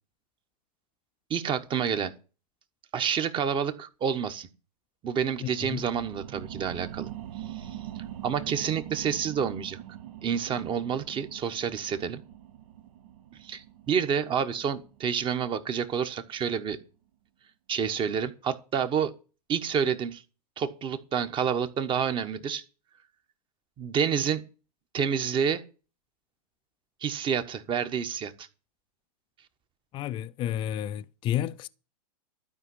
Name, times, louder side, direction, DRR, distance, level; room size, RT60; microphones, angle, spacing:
voice 1, 1.3-2.1 2.9-4.5 5.0-7.1 7.4-7.8 8.2-9.8 10.2-12.2 13.4-16.8 17.7-19.1 19.5-20.2 20.6-22.6 23.8-24.4 24.9-25.6 27.0-28.5, right 7 dB, 25° right, 1.2 m, -29 dB
sound 1, 5.3-16.4 16.8-16.9, right 11 dB, 60° right, 0.9 m, -43 dB
voice 2, 5.4-5.8 29.9-31.7, left 11 dB, 25° left, 0.5 m, -31 dB
12.5 x 5.2 x 8.2 m
hypercardioid pair, 120°, 20 cm